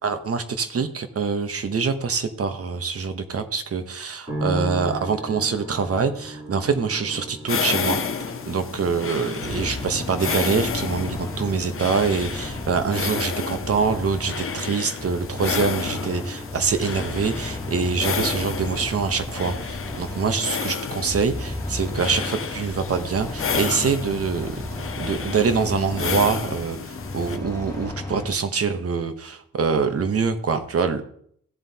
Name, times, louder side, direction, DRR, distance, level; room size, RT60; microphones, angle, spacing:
voice 1, 0.0-8.0 8.5-24.5 25.0-26.8 27.1-31.1, right 5 dB, 45° right, 9 dB, 0.9 m, -25 dB
sound 1, 4.3-19.5 19.8-20.6, equal, 15° right, 3.0 m, -39 dB
sound 2, 7.5-27.4, left 6 dB, 45° left, 0.6 m, -31 dB
sound 3, 9.4-28.3, left 1 dB, 10° left, 1.9 m, -34 dB
15.5 x 7.5 x 2.8 m, 0.65 s
wide cardioid pair, 175°, 32 cm